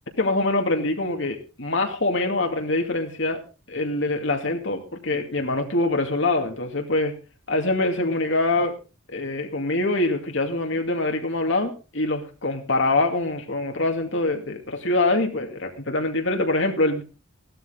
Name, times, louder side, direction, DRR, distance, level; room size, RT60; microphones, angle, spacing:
voice 1, 0.2-3.4 3.7-7.1 7.5-8.7 9.1-17.0, left 2 dB, 60° left, 4 dB, 2.4 m, -24 dB
16.5 x 12.5 x 3.8 m, 0.32 s
head